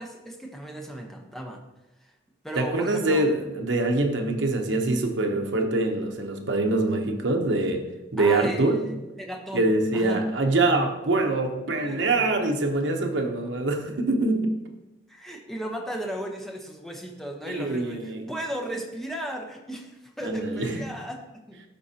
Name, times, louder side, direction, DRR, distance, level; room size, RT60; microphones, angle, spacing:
voice 1, 0.0-1.6 2.0-2.1 2.4-3.2 8.2-10.2 11.8-12.6 15.1-21.2 21.5-21.6, right 1 dB, ahead, 1 dB, 0.8 m, -36 dB
voice 2, 2.6-7.8 8.1-8.8 9.5-14.5 17.5-18.3 20.2-20.8, right 2 dB, 75° right, 3 dB, 0.9 m, -24 dB
12.5 x 4.5 x 2.9 m, 1.0 s
head